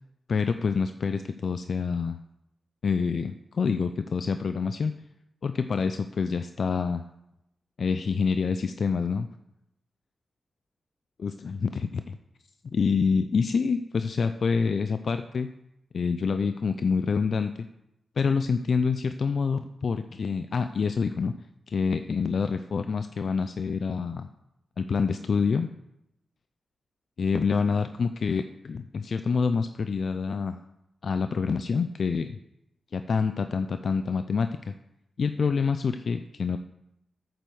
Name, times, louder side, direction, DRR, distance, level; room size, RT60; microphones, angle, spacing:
voice 1, 0.3-2.2 2.8-4.9 5.4-7.0 7.8-9.3 11.2-12.2 12.6-15.5 15.9-17.5 18.2-21.3 21.7-24.3 24.8-25.7 27.2-30.6 31.0-32.4 32.9-34.7 35.2-36.6, left 5 dB, 65° left, 9 dB, 0.5 m, -27 dB
9.1 x 7.6 x 7.0 m, 0.86 s
cardioid pair, 75°, 0 cm